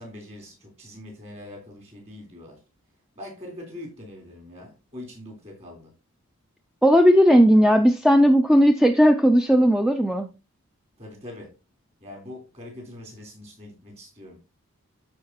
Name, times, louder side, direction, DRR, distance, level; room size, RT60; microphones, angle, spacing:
voice 1, 0.0-2.6 3.2-5.9 11.0-11.5 12.0-14.4, left 1 dB, 30° right, 3.6 m, -42 dB
voice 2, 6.8-10.3, equal, ahead, 0.4 m, -16 dB
13.0 x 4.8 x 2.9 m
head